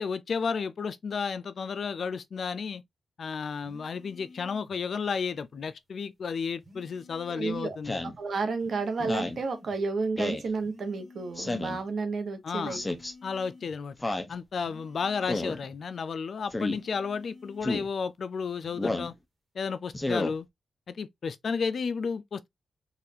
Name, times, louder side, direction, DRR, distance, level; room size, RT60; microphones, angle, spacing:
voice 1, 0.0-2.8 3.2-8.0 12.4-12.8 13.2-13.9 14.3-19.1 19.6-20.5 20.9-22.5, left 5 dB, 60° left, 0.4 m, -32 dB
sound 1, 3.6-4.8 6.6-7.8 8.6-9.8 10.6-11.8 12.6-13.8 14.6-15.8 16.6-17.8 18.6-18.9, left 2 dB, 30° right, 1.3 m, -52 dB
voice 2, 7.3-7.8 8.0-12.8, right 4 dB, 65° right, 0.9 m, -31 dB
Speech synthesizer, 7.8-8.2 9.0-9.4 10.2-10.5 11.4-11.8 12.7-13.1 14.0-14.3 15.3-15.6 16.5-16.8 17.6-17.9 18.8-19.1 19.9-20.3, left 2 dB, 20° left, 0.6 m, -31 dB
4.0 x 2.4 x 2.6 m
cardioid pair, 95°, 0 cm